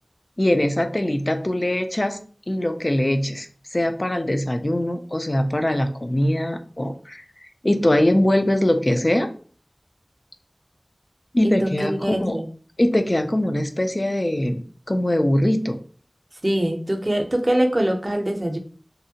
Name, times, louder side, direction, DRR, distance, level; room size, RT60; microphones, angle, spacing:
voice 1, 0.4-2.2 2.5-9.3 11.3-12.4 12.8-15.8, left 1 dB, 40° left, 7 dB, 0.3 m, -22 dB
voice 2, 11.4-12.5 16.4-18.6, right 1 dB, 40° right, 4 dB, 0.5 m, -23 dB
2.6 x 2.1 x 2.7 m, 0.42 s
wide cardioid pair, 50°, 0 cm